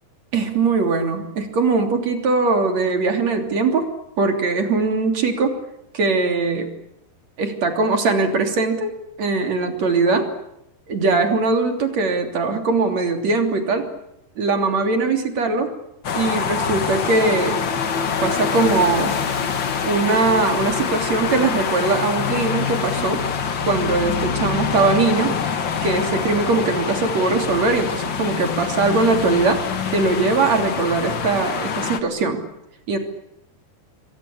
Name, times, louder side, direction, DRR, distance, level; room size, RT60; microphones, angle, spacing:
voice 1, 0.3-5.6 5.9-6.7 7.4-10.3 10.9-13.9 14.4-15.7 16.2-17.6 18.2-19.1 19.8-23.2 23.7-25.4 25.8-29.6 29.9-32.4 32.9-33.0, right 3 dB, 45° right, 5 dB, 4.0 m, -21 dB
sound 1, 16.0-32.0, left 6 dB, 80° left, 1.0 m, -25 dB
27.5 x 22.5 x 8.6 m, 0.84 s
omnidirectional pair, 4.8 m